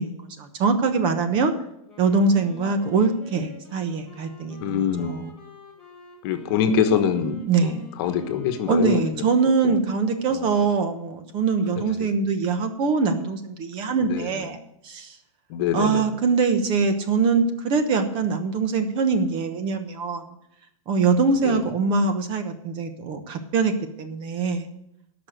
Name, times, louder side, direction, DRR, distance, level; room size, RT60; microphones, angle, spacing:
voice 1, 0.0-1.5 2.0-4.8 5.0-5.2 7.5-7.8 8.7-14.6 14.8-15.2 15.7-20.2 20.9-23.7 24.0-24.7, right 4 dB, 30° right, 8 dB, 1.0 m, -23 dB
Wind instrument woodwind instrument, 1.8-9.5, left 4 dB, 5° left, 2.9 m, -47 dB
voice 2, 4.6-5.1 6.2-9.3 9.6-9.9 10.3-10.5 11.8-12.1 14.1-14.5 15.5-16.1 21.4-21.6, left 7 dB, 45° left, 8 dB, 1.3 m, -25 dB
13.0 x 6.0 x 7.9 m, 0.76 s
supercardioid pair, 160°, 18 cm